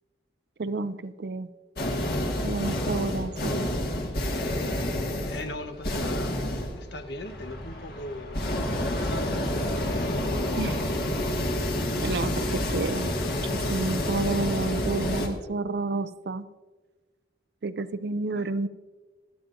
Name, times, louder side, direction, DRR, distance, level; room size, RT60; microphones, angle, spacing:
voice 1, 0.6-1.5 2.4-3.7 10.5-10.9 12.0-13.2 13.7-16.4 17.6-18.7, right 3 dB, 65° right, 0.5 m, -30 dB
sound 1, 1.8-15.3, left 1 dB, 60° left, 1.7 m, -29 dB
voice 2, 5.3-6.4 6.8-9.6 18.3-18.5, left 1 dB, 75° left, 1.0 m, -39 dB
26.0 x 9.3 x 2.6 m
head